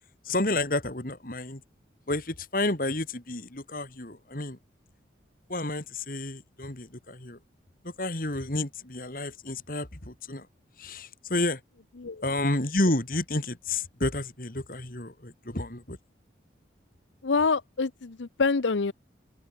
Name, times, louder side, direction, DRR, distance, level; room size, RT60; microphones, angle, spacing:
voice 1, 0.3-1.6 2.1-4.6 5.5-7.4 8.0-10.5 10.8-11.6 12.2-16.0, left 2 dB, 50° left, 2.5 m, -30 dB
voice 2, 17.2-18.9, left 4 dB, 80° left, 0.7 m, -26 dB
head